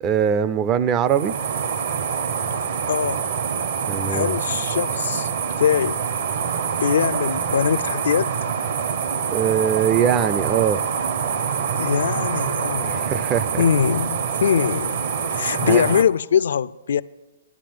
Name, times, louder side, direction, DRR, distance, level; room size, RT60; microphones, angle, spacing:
voice 1, 0.0-1.3 3.9-4.3 9.3-10.8 12.8-13.6 15.6-15.8, right 8 dB, 20° right, 0.4 m, -21 dB
sound 1, 1.1-16.0, right 7 dB, 50° right, 0.9 m, -25 dB
voice 2, 2.9-3.2 4.1-5.3 5.6-6.1 6.7-8.3 11.7-13.1 13.6-17.0, left 8 dB, 65° left, 0.4 m, -22 dB
11.0 x 7.1 x 9.2 m
hypercardioid pair, 160°, 0 cm